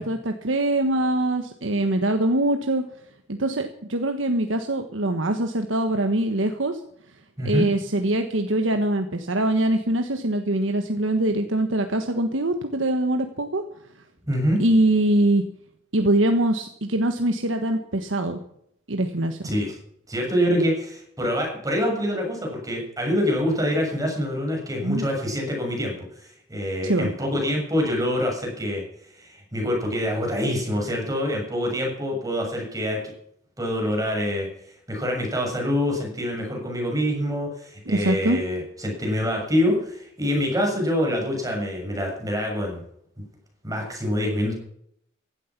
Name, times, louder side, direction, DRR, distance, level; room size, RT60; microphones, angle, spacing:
voice 1, 0.0-2.8 3.3-6.8 7.4-13.6 14.6-15.4 15.9-18.4 18.9-19.5 24.8-25.0 26.8-27.1 37.9-38.4, right 1 dB, 90° right, 6 dB, 1.4 m, -23 dB
voice 2, 7.4-7.7 14.2-14.6 19.4-19.8 20.1-28.8 29.1-33.0 33.6-34.5 34.9-42.8 43.6-44.5, equal, 20° right, 0 dB, 6.8 m, -25 dB
16.0 x 12.5 x 6.0 m, 0.71 s
head